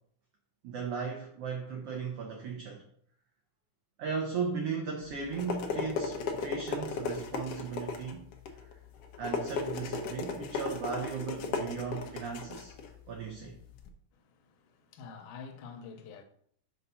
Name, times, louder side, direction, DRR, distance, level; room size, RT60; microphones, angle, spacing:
voice 1, 0.6-2.8 4.0-8.3 8.6-8.7 9.2-12.7 13.1-13.6, right 5 dB, 70° right, 1.5 m, -36 dB
sound 1, 5.0-13.9, left 5 dB, 70° left, 1.6 m, -36 dB
voice 2, 14.3-16.2, left 5 dB, 85° left, 2.3 m, -47 dB
6.7 x 4.0 x 5.6 m
omnidirectional pair, 3.6 m